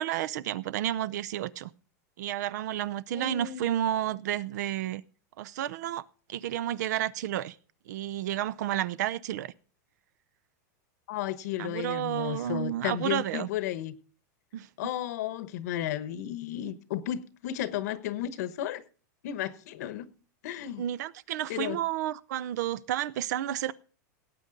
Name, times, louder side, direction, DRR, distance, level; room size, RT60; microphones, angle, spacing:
voice 1, 0.0-1.7 2.2-5.0 5.4-7.6 7.9-9.5 11.6-13.5 14.5-14.7 20.8-23.7, right 12 dB, 70° right, 0.6 m, -31 dB
voice 2, 3.1-3.7 11.1-13.9 14.8-18.8 19.2-20.1 20.4-20.8 21.5-21.8, left 11 dB, 65° left, 1.0 m, -33 dB
18.0 x 8.4 x 3.9 m
supercardioid pair, 160°, 10 cm